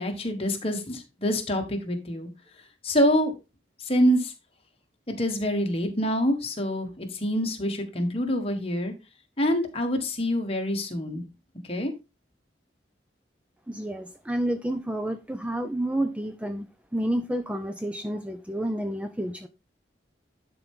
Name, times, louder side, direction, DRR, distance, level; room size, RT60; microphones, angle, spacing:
voice 1, 0.0-2.3 2.8-3.3 3.8-4.3 5.2-8.9 9.4-11.2 11.7-11.9, equal, 35° left, 1.5 m, -26 dB
voice 2, 13.7-16.7 16.9-19.5, right 1 dB, 5° right, 0.4 m, -30 dB
11.0 x 4.5 x 3.6 m
head